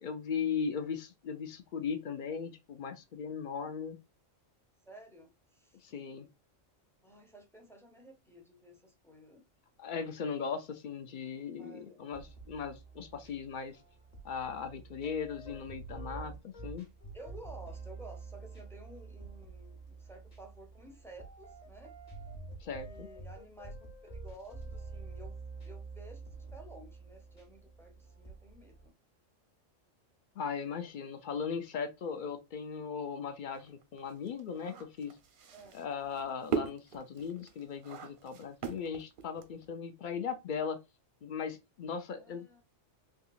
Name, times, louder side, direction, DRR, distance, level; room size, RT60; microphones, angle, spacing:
voice 1, 0.0-4.0 5.8-6.3 9.8-13.8 14.2-16.9 22.6-23.1 30.4-35.2 35.7-40.8 41.2-42.5, left 6 dB, 60° left, 0.5 m, -38 dB
voice 2, 4.9-5.9 7.0-9.5 11.6-12.1 17.1-21.9 22.8-25.3 25.6-28.9 35.5-35.8 42.1-42.6, right 1 dB, 5° left, 0.5 m, -53 dB
sound 1, 12.1-28.9, right 3 dB, 35° left, 1.1 m, -48 dB
sound 2, 33.5-39.7, right 6 dB, 55° right, 0.7 m, -40 dB
3.6 x 2.9 x 2.3 m
omnidirectional pair, 1.3 m